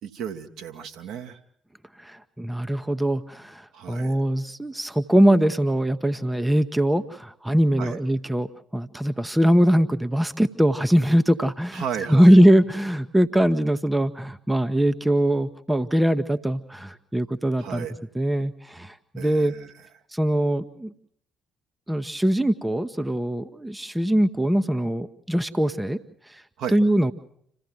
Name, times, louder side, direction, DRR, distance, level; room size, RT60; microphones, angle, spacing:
voice 1, 0.0-1.4 3.7-4.2 7.8-8.0 11.7-12.4 17.6-17.9 19.1-19.7 26.6-26.8, right 8 dB, 55° right, 5 dB, 1.5 m, -34 dB
voice 2, 2.0-11.8 12.1-17.9 18.1-19.5 20.1-20.9 21.9-26.0 26.3-26.4 26.7-27.1, equal, 5° right, 10 dB, 0.9 m, -22 dB
27.0 x 15.5 x 7.7 m, 0.69 s
figure-of-eight pair, 45°, 0 cm